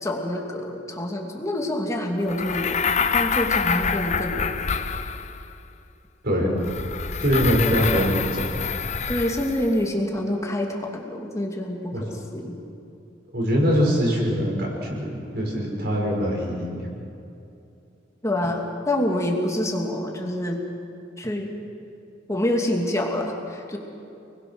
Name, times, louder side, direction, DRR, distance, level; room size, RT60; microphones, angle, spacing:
voice 1, 0.0-4.6 9.1-12.6 18.2-20.6 21.2-21.5 22.3-23.8, left 1 dB, 15° left, 1 dB, 2.7 m, -27 dB
sound 1, 2.3-5.5 6.6-9.8, left 6 dB, 40° left, 0.8 m, -26 dB
voice 2, 6.2-6.6 7.2-8.7 11.9-12.0 13.3-16.9, equal, 55° right, -1 dB, 6.3 m, -23 dB
30.0 x 21.0 x 6.4 m, 2.7 s
head